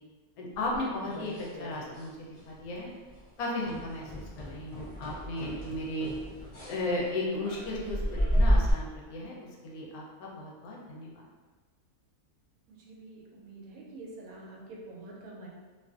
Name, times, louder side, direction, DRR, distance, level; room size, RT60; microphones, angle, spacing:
voice 1, 0.4-1.3 1.6-2.9 3.4-6.1 6.6-9.3 9.6-11.1, left 1 dB, 80° left, -3 dB, 1.1 m, -35 dB
sound 1, 0.7-2.1 2.4-2.7 3.0-3.2 3.6-8.7, equal, 55° left, 0.3 m, -31 dB
voice 2, 12.7-15.5, right 2 dB, 75° right, -3 dB, 1.0 m, -47 dB
2.5 x 2.5 x 2.3 m, 1.3 s
omnidirectional pair, 1.6 m